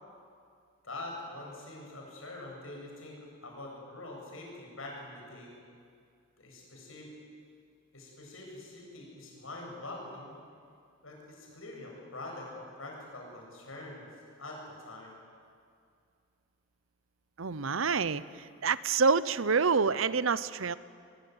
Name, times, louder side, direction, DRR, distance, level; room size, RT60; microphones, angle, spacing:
voice 1, 0.8-5.5 6.4-7.1 7.9-10.3 11.0-14.1 14.4-15.2, left 2 dB, 80° left, -1 dB, 7.9 m, -44 dB
voice 2, 17.4-18.2 18.6-20.8, right 5 dB, 80° right, 17 dB, 0.7 m, -27 dB
22.0 x 22.0 x 9.6 m, 2.3 s
head